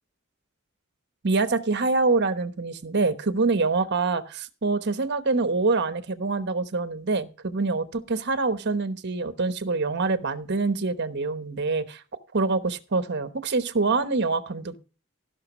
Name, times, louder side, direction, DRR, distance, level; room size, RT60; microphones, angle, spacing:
voice 1, 1.2-12.0 12.3-14.8, right 3 dB, 55° right, 12 dB, 1.1 m, -25 dB
15.0 x 6.1 x 6.1 m, 0.34 s
head